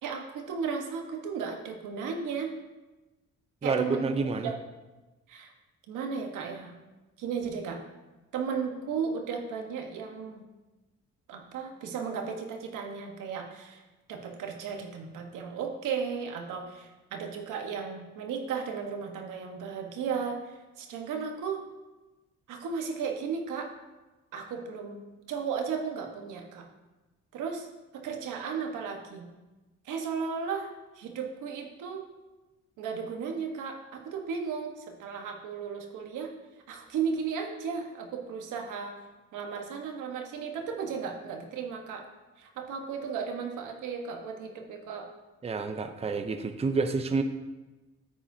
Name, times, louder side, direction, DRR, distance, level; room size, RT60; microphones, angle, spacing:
voice 1, 0.0-2.5 3.6-4.1 4.4-4.6 5.3-5.5 5.9-6.7 7.2-7.8 8.3-10.4 11.3-13.8 14.1-21.6 22.5-23.7 24.3-26.6 27.3-27.7 27.9-29.2 29.8-30.7 30.9-32.0 32.8-36.3 36.7-38.9 39.3-42.0 42.4-45.1, right 6 dB, 85° right, 2 dB, 1.3 m, -35 dB
voice 2, 3.6-4.5 45.4-47.2, right 4 dB, 20° right, 7 dB, 0.6 m, -29 dB
9.3 x 8.9 x 2.8 m, 1.1 s
cardioid pair, 90°, 30 cm